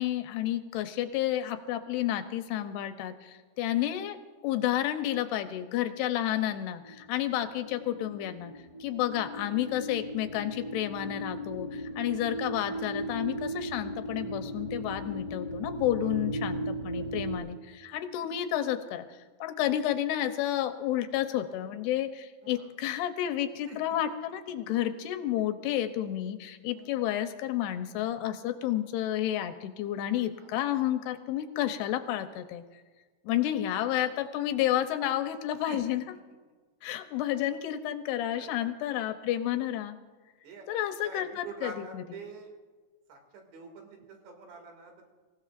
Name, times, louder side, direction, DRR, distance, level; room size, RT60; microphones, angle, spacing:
voice 1, 0.0-4.2 4.4-8.5 8.8-32.6 33.3-36.0 36.8-40.0 40.7-42.0, left 12 dB, 80° left, 8 dB, 2.6 m, -31 dB
sound 1, 6.4-17.4, right 1 dB, 35° right, 1.5 m, -37 dB
voice 2, 26.6-26.9 30.3-30.5 35.7-35.8 37.0-37.2 38.3-39.1 40.4-40.7 41.0-42.5 43.1-45.1, right 3 dB, 80° right, 2 dB, 4.5 m, -46 dB
26.0 x 16.0 x 2.5 m, 1.4 s
omnidirectional pair, 5.0 m